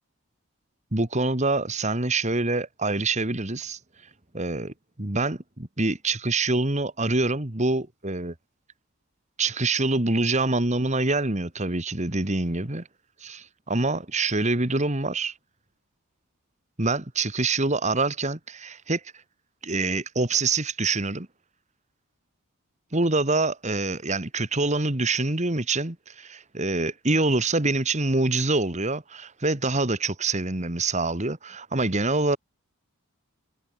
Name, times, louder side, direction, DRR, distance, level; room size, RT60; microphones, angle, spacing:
voice 1, 0.9-3.8 4.3-4.7 5.0-8.3 9.4-12.8 13.2-15.3 16.8-19.0 19.6-21.3 22.9-32.4, right 3 dB, 30° right, 1.9 m, -25 dB
head